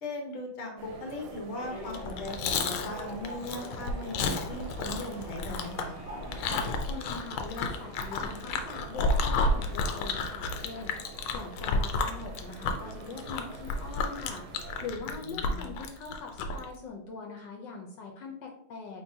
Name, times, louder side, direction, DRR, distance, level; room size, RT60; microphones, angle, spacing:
voice 1, 0.0-5.9 15.3-15.6, left 2 dB, 55° left, 2 dB, 0.8 m, -38 dB
sound 1, 0.8-14.9, right 5 dB, 90° right, 1.4 m, -47 dB
sound 2, 1.5-6.6, equal, 5° right, 1.0 m, -44 dB
Chewing mastication, 1.8-16.6, left 3 dB, 85° left, 1.4 m, -31 dB
voice 2, 6.5-19.0, left 4 dB, 70° left, 2 dB, 1.2 m, -42 dB
4.2 x 3.8 x 2.6 m, 0.74 s
omnidirectional pair, 2.3 m